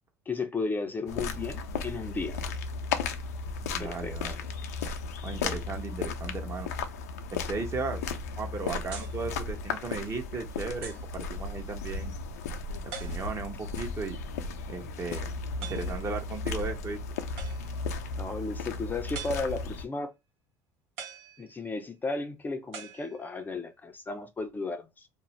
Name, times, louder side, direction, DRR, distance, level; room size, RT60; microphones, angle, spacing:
voice 1, 0.3-2.4 3.8-4.2 18.2-20.1 21.4-25.1, left 3 dB, 20° left, 0.4 m, -34 dB
sound 1, 1.1-19.8, left 4 dB, 90° left, 0.4 m, -35 dB
voice 2, 3.6-4.4 5.2-6.7 7.3-8.0 8.4-12.2 12.8-14.2 14.7-15.3 15.6-17.0, right 4 dB, 35° right, 0.8 m, -36 dB
sound 2, 8.9-9.2 10.0-10.1 10.8-11.2 12.9-13.5 15.6-16.0 17.4-17.9 19.1-19.8 21.0-21.8 22.7-23.6, right 6 dB, 80° right, 0.9 m, -44 dB
2.4 x 2.0 x 3.0 m
hypercardioid pair, 80°, 8 cm